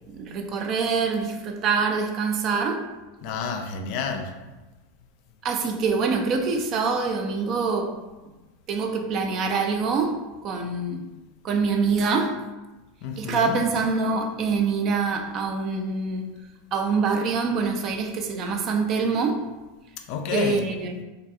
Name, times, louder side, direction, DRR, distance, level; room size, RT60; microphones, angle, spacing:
voice 1, 0.1-2.9 5.4-8.0 8.7-11.1 11.4-12.4 13.2-16.3 16.7-19.5 20.3-21.0, right 4 dB, 45° right, 0.3 m, -25 dB
voice 2, 3.2-4.3 13.0-13.6 20.1-20.6, left 6 dB, 55° left, 0.3 m, -30 dB
2.6 x 2.2 x 2.6 m
hypercardioid pair, 100°, 0 cm